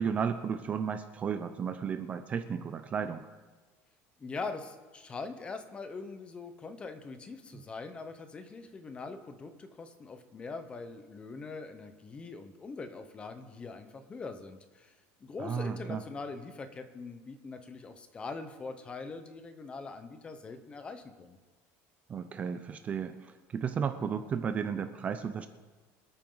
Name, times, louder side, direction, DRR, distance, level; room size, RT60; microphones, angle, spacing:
voice 1, 0.0-3.3 15.4-16.0 22.1-25.5, right 6 dB, 25° right, 9 dB, 0.5 m, -33 dB
voice 2, 4.2-14.9 15.2-21.4, left 4 dB, 15° left, 9 dB, 0.9 m, -42 dB
26.0 x 9.0 x 3.9 m, 1.3 s
cardioid pair, 175°, 6 cm